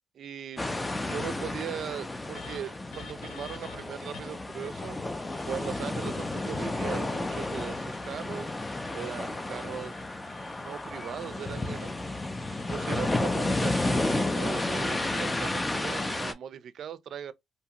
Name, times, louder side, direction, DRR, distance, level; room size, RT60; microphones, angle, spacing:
voice 1, 0.2-5.0 5.5-8.5 8.9-10.0 10.6-17.3, right 9 dB, 65° right, 0.4 m, -39 dB
sound 1, 0.6-16.3, left 2 dB, 20° left, 0.4 m, -32 dB
sound 2, 2.3-4.5 5.2-6.6 7.1-10.8 11.2-15.4, left 5 dB, 85° left, 0.7 m, -50 dB
2.7 x 2.4 x 2.8 m
cardioid pair, 90°, 0 cm